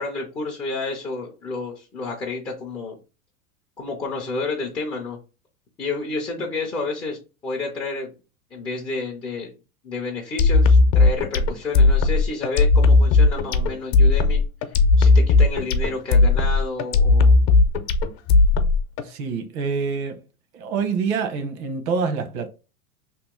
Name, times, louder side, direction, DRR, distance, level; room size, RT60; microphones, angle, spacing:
voice 1, 0.0-2.9 3.8-5.2 5.8-8.1 8.5-9.5 9.8-14.4 15.0-17.4, left 3 dB, 10° left, 0.3 m, -30 dB
sound 1, 10.4-19.0, left 3 dB, 65° left, 0.7 m, -16 dB
voice 2, 19.0-20.2 20.5-22.5, right 5 dB, 70° right, 1.0 m, -26 dB
3.0 x 2.5 x 3.5 m
supercardioid pair, 130°, 44 cm